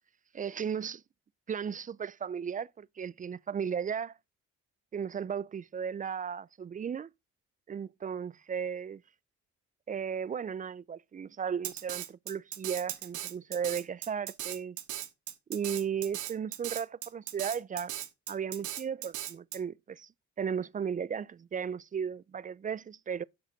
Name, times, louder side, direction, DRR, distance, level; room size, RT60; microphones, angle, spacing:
voice 1, 0.3-1.0 1.5-4.1 4.9-7.1 7.7-9.0 9.9-14.8 15.5-17.9 18.3-20.1 20.4-23.2, right 7 dB, 30° right, 0.4 m, -35 dB
Drum kit, 11.6-19.6, right 12 dB, 75° right, 1.2 m, -38 dB
8.1 x 4.9 x 5.1 m
cardioid pair, 90°, 30 cm